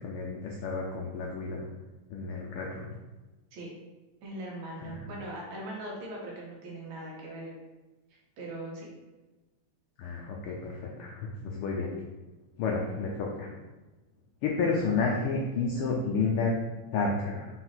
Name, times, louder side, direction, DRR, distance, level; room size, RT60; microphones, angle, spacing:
voice 1, 0.0-1.6 2.1-2.9 4.8-5.0 10.0-11.9 12.6-13.5 14.4-16.6 16.9-17.5, left 4 dB, 85° left, -1 dB, 1.2 m, -31 dB
voice 2, 4.2-7.5 8.4-8.9, right 1 dB, 75° right, -3 dB, 2.7 m, -40 dB
5.3 x 4.1 x 4.4 m, 1.2 s
omnidirectional pair, 3.3 m